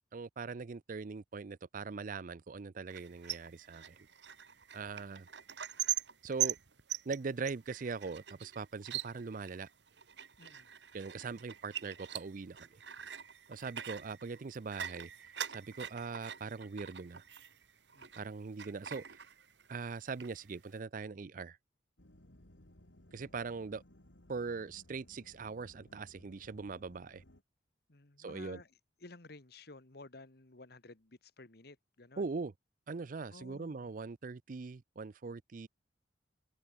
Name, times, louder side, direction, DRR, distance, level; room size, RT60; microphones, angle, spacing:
voice 1, 0.1-4.0 4.7-5.3 6.2-6.6 7.1-9.7 10.9-12.8 13.5-17.2 18.2-19.2 19.7-21.6 23.1-23.8 24.3-27.2 28.2-28.6 32.2-32.5 32.9-35.7, right 4 dB, 45° right, 0.5 m, -41 dB
sound 1, 2.9-18.3 18.6-19.8 20.1-20.7, right 11 dB, 70° right, 1.8 m, -42 dB
voice 2, 10.4-10.7 17.9-18.1 27.9-28.7 29.0-32.2 33.3-33.9, left 2 dB, 60° left, 1.5 m, -54 dB
sound 2, 22.0-27.4, left 1 dB, 85° left, 3.5 m, -61 dB
head